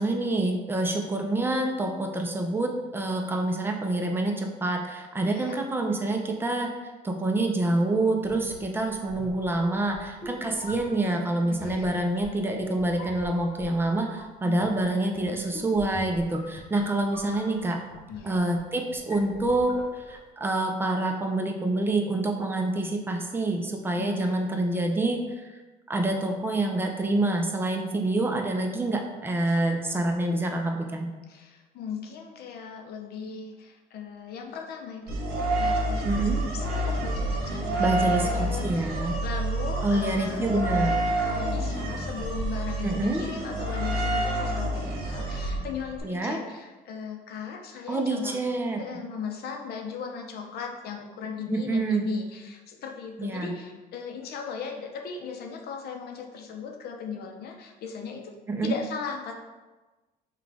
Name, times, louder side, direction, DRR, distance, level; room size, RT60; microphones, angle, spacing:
voice 1, 0.0-6.7 7.0-17.8 18.2-25.4 25.9-31.1 36.0-36.4 37.8-39.2 39.8-41.0 42.8-43.2 46.0-46.4 47.9-48.8 51.5-52.1 53.2-53.6 58.5-58.7, right 2 dB, 15° right, 2 dB, 0.6 m, -27 dB
voice 2, 5.2-5.6 11.4-12.0 14.4-14.7 18.1-18.4 24.0-24.4 29.5-29.6 31.3-40.5 41.2-48.4 48.8-59.3, left 6 dB, 70° left, 3 dB, 0.7 m, -38 dB
sound 1, 8.2-20.3, left 1 dB, 40° left, 1.1 m, -45 dB
sound 2, 35.1-46.0, right 1 dB, 60° right, 1.1 m, -28 dB
5.7 x 2.4 x 3.4 m, 1.2 s
cardioid pair, 110°, 17 cm